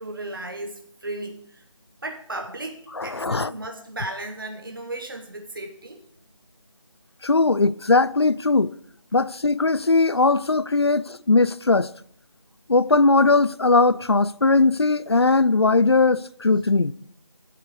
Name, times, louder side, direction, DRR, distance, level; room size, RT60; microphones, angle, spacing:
voice 1, 0.0-1.6 2.0-6.0, right 2 dB, 45° right, 1.1 m, -35 dB
voice 2, 3.0-3.5 7.2-8.7 9.1-11.9 12.7-16.9, left 3 dB, 55° left, 0.4 m, -19 dB
9.4 x 8.3 x 6.5 m
figure-of-eight pair, 170°, 16 cm